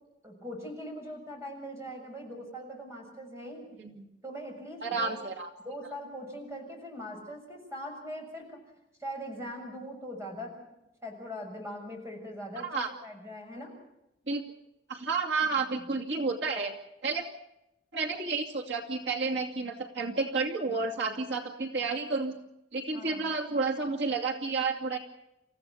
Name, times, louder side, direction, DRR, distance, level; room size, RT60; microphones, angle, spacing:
voice 1, 0.2-3.7 4.2-5.1 5.6-8.6 9.0-10.7 11.0-13.7 15.4-15.5 22.9-23.2, equal, 15° right, 1 dB, 6.9 m, -41 dB
voice 2, 4.8-5.5 12.6-12.9 14.3-14.4 14.9-16.7 17.0-17.3 17.9-22.3 22.7-25.0, right 4 dB, 80° right, 1 dB, 2.5 m, -31 dB
28.5 x 15.5 x 6.9 m, 0.90 s
head